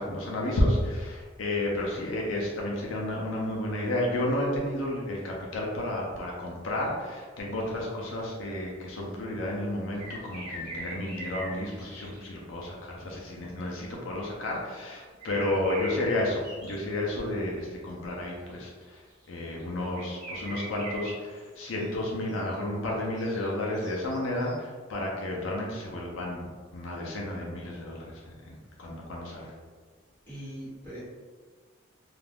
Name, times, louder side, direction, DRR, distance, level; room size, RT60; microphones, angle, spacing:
voice 1, 0.0-19.0 19.3-26.5 26.7-29.5, left 1 dB, 75° left, -2 dB, 0.5 m, -31 dB
sound 1, 10.0-12.3 15.2-16.8 17.1-17.2 18.5-18.8 19.2-19.3 19.6-19.7 19.9-21.9 22.3-22.6 23.2-23.5 23.7-24.5, right 1 dB, 25° right, 1.4 m, -41 dB
voice 2, 30.3-31.0, equal, 10° left, -11 dB, 1.2 m, -41 dB
2.4 x 2.3 x 3.3 m, 1.5 s
head